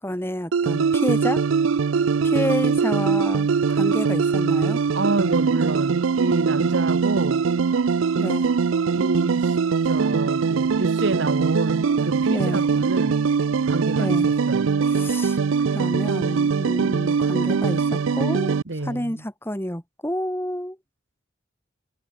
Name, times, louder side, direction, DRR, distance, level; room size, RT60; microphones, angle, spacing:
voice 1, 0.0-1.4 2.2-4.8 8.2-8.5 12.3-12.7 14.0-14.3 14.9-15.4 15.7-18.6 18.8-20.8, equal, 10° left, 4.6 m, -29 dB
sound 1, 0.5-18.6, right 5 dB, 80° right, 0.5 m, -22 dB
voice 2, 4.9-7.5 8.9-9.6 9.8-13.2 13.6-14.7 18.7-19.2, right 2 dB, 65° right, 1.3 m, -28 dB
head